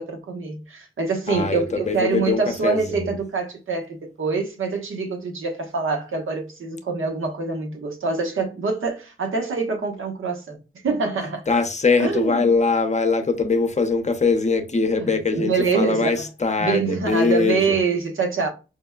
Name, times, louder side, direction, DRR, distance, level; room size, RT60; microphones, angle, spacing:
voice 1, 0.0-10.6 10.8-11.4 12.0-12.4 15.0-16.2 16.6-18.5, right 4 dB, 75° right, 1.0 m, -25 dB
voice 2, 1.3-3.2 11.5-17.8, left 4 dB, 35° left, 0.7 m, -22 dB
5.1 x 2.1 x 2.3 m
cardioid pair, 65°, 21 cm